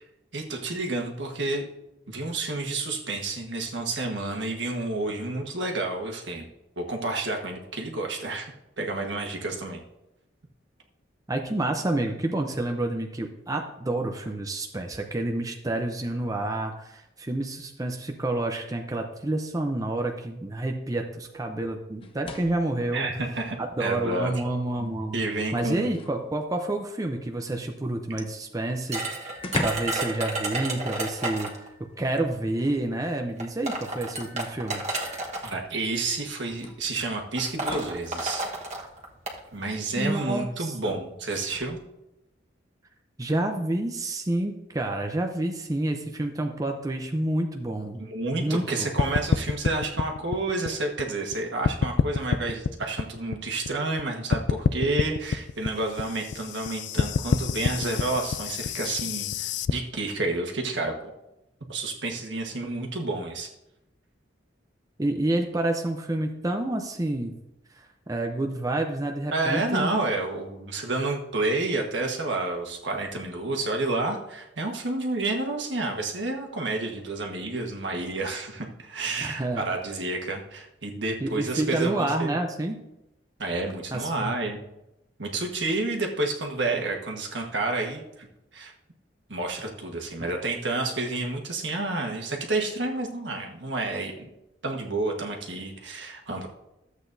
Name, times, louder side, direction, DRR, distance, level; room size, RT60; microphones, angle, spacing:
voice 1, 0.3-1.7 2.1-6.5 6.8-9.8 22.9-24.4 24.8-25.9 35.4-38.4 39.5-41.8 48.0-60.9 61.7-63.5 69.3-82.3 83.4-84.6 85.2-88.3 88.5-88.7 89.3-94.3 94.6-96.5, right 2 dB, 70° right, 2 dB, 1.5 m, -30 dB
voice 2, 11.3-23.0 23.6-25.2 25.5-31.5 32.0-34.8 40.0-41.0 43.2-48.0 48.4-48.9 65.0-67.3 67.7-69.9 79.2-79.6 81.2-82.8 83.9-84.3, right 1 dB, 20° right, 3 dB, 0.6 m, -29 dB
sound 1, 22.0-22.7 24.1-24.2 24.7-26.3 28.3-28.4 28.7-28.8 29.3-30.1 30.4-30.6 32.1-32.9 34.0-34.1 35.6-35.7 36.6-38.1 41.4-41.7, left 2 dB, 30° left, 0.7 m, -38 dB
sound 2, 28.9-31.7 32.7-32.8 33.4-35.5 36.4-36.7 37.0-37.1 37.4-39.4, right 2 dB, 40° right, 1.4 m, -32 dB
sound 3, 49.0-51.3 51.6-54.0 54.3-59.7, left 6 dB, 65° left, 0.3 m, -27 dB
13.5 x 8.1 x 2.7 m, 0.90 s
head